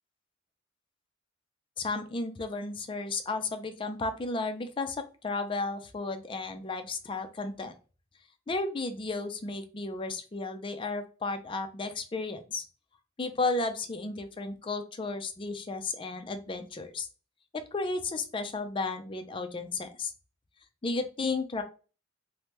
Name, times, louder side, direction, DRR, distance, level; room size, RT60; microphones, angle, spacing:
voice 1, 1.8-7.7 8.5-12.6 13.2-17.1 17.5-20.1 20.8-21.6, left 3 dB, 25° left, 7 dB, 0.4 m, -33 dB
3.3 x 2.1 x 2.9 m, 0.34 s
head